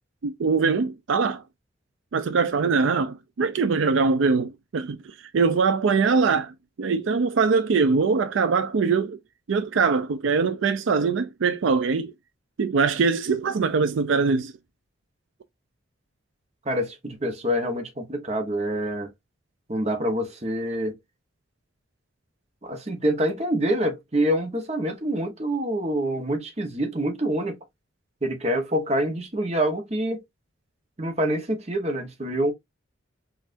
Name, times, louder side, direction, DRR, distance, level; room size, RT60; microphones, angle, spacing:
voice 1, 0.2-1.4 2.1-9.2 9.5-12.1 12.6-14.5, right 4 dB, 80° right, 0.4 m, -22 dB
voice 2, 16.6-19.1 19.7-21.0 22.6-27.6 28.2-30.2 31.0-32.5, right 1 dB, 35° right, 1.0 m, -26 dB
5.4 x 2.5 x 2.5 m
head